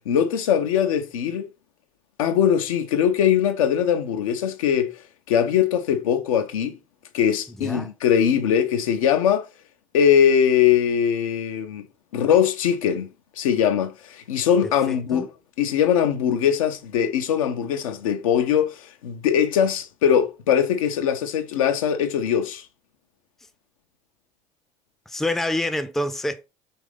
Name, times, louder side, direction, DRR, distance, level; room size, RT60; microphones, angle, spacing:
voice 1, 0.1-1.5 2.2-4.9 5.3-6.8 7.1-9.5 9.9-11.9 12.1-15.3 15.6-22.6, left 8 dB, 80° left, 0.4 m, -21 dB
voice 2, 7.6-7.9 14.6-15.3 25.1-26.4, left 1 dB, ahead, 0.3 m, -27 dB
3.0 x 2.5 x 3.3 m
hypercardioid pair, 65°, 17 cm